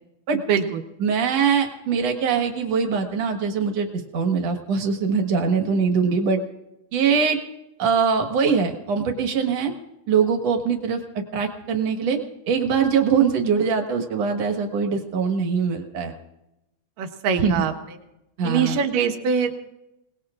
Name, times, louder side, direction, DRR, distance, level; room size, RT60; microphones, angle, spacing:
voice 1, 0.5-0.8 17.0-17.7 18.4-19.7, right 7 dB, 80° right, 5 dB, 2.8 m, -23 dB
voice 2, 1.0-6.4 6.9-7.4 7.8-9.7 10.1-11.0 11.3-12.2 12.5-16.1 17.4-17.7 18.4-18.8, right 6 dB, 55° right, 4 dB, 2.4 m, -22 dB
28.0 x 19.5 x 2.5 m, 0.90 s
omnidirectional pair, 3.8 m